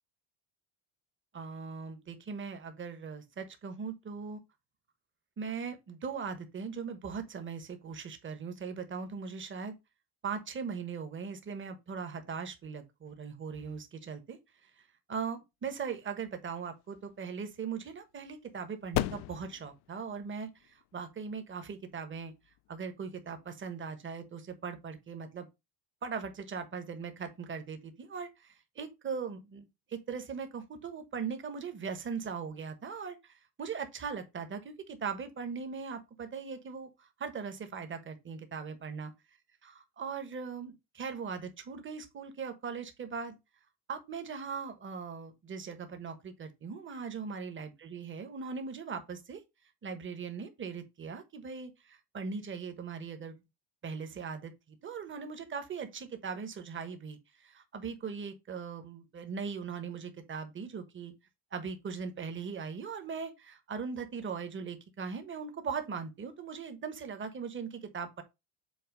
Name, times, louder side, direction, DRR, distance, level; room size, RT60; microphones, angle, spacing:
voice 1, 1.3-4.4 5.4-9.7 10.2-14.4 15.1-22.3 22.7-25.5 26.0-36.9 37.2-39.1 39.6-43.4 43.9-49.4 49.8-53.3 53.8-61.1 61.5-68.2, right 5 dB, 25° right, 1.2 m, -39 dB
sound 1, 16.3-23.6, left 17 dB, 65° left, 0.5 m, -41 dB
7.8 x 2.9 x 5.2 m
cardioid pair, 140°, 44 cm